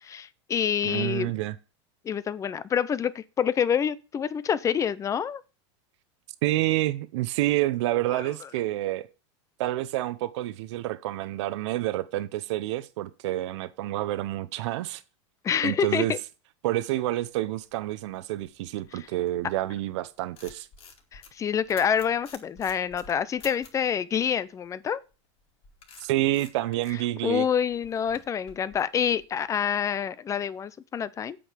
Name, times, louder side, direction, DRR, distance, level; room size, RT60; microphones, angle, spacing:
voice 1, 0.0-1.3 2.0-5.4 8.1-8.3 15.4-16.2 18.9-19.1 21.1-25.0 27.2-31.4, left 8 dB, 20° left, 0.6 m, -27 dB
voice 2, 0.8-1.6 6.4-9.1 9.6-15.0 15.6-16.1 16.6-20.7 26.0-27.5, right 16 dB, 70° right, 0.8 m, -28 dB
sound 1, 17.6-19.8 20.1-23.9 25.1-29.6, left 5 dB, 35° left, 2.4 m, -51 dB
8.6 x 5.6 x 7.4 m
supercardioid pair, 135°, 15 cm